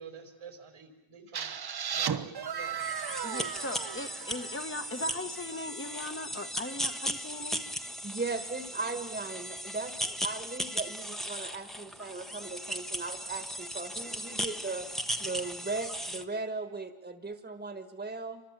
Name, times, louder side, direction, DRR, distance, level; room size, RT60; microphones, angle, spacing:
voice 1, 0.0-1.6 1.9-2.8, right 5 dB, 85° right, 7 dB, 4.7 m, -49 dB
sound 1, 1.3-5.1, right 7 dB, 50° right, 1.1 m, -36 dB
sound 2, 2.8-16.2, equal, ahead, 1.1 m, -37 dB
voice 2, 3.2-7.7, left 1 dB, 25° left, 7 dB, 1.3 m, -39 dB
voice 3, 8.0-18.4, right 3 dB, 20° right, 9 dB, 1.6 m, -38 dB
29.0 x 25.5 x 7.5 m, 1.0 s
wide cardioid pair, 155°, 49 cm